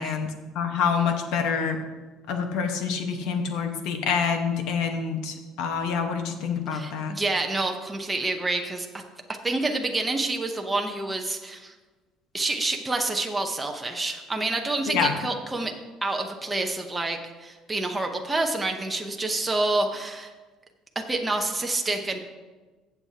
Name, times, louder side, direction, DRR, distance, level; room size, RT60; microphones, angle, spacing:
voice 1, 0.0-1.8 2.3-7.1 14.9-15.1, left 6 dB, 70° left, 5 dB, 1.2 m, -27 dB
voice 2, 6.7-9.0 9.4-11.7 12.3-15.7 16.0-20.3 21.1-22.2, right 2 dB, 10° right, 3 dB, 0.7 m, -28 dB
15.0 x 7.2 x 2.8 m, 1.3 s
cardioid pair, 170°, 0 cm